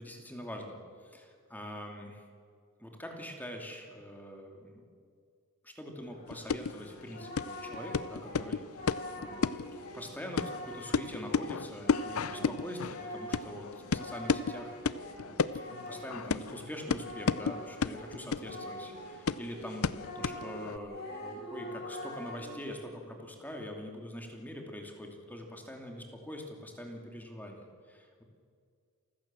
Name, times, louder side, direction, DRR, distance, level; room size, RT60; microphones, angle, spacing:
voice 1, 0.0-2.2 2.8-4.9 5.6-9.6 9.9-28.1, left 1 dB, 10° left, 2 dB, 2.6 m, -44 dB
Singing, 6.0-19.2 19.5-22.7, left 1 dB, 45° left, 6.8 m, -44 dB
sound 1, 6.3-20.8, left 5 dB, 70° left, 0.6 m, -34 dB
28.0 x 15.5 x 7.5 m, 2.2 s
head